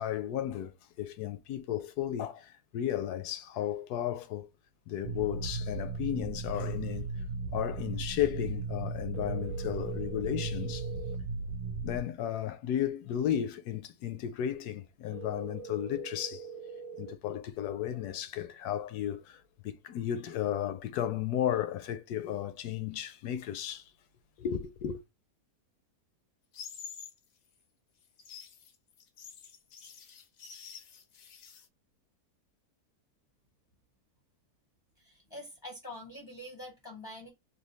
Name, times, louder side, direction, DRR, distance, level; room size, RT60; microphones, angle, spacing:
voice 1, 0.0-4.5 4.9-7.1 7.5-10.9 11.8-16.5 17.0-23.9 24.4-25.0, left 11 dB, 80° left, 1.1 m, -34 dB
sound 1, 5.0-12.0, right 4 dB, 30° right, 0.9 m, -36 dB
sound 2, 9.1-11.1 15.1-17.1, right 6 dB, 65° right, 0.9 m, -44 dB
sound 3, 26.5-27.2 28.0-31.7, left 7 dB, 65° left, 0.7 m, -48 dB
voice 2, 35.0-37.3, left 1 dB, 20° left, 0.6 m, -45 dB
3.4 x 2.2 x 3.1 m
omnidirectional pair, 1.7 m